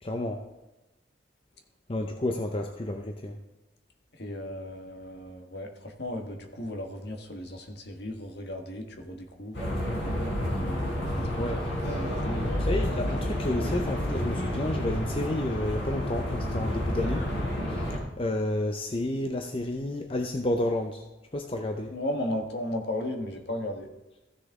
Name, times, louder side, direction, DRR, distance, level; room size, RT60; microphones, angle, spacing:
voice 1, 0.0-0.4 1.9-3.4 11.4-11.6 12.6-17.3 17.7-21.0 21.3-21.9, left 1 dB, 30° left, 4 dB, 0.6 m, -31 dB
voice 2, 4.2-9.6 10.6-12.7 21.9-23.9, left 1 dB, 60° left, 3 dB, 1.5 m, -35 dB
sound 1, 9.5-18.0, equal, 75° left, 3.8 m, -30 dB
15.0 x 6.5 x 3.6 m, 1.1 s
head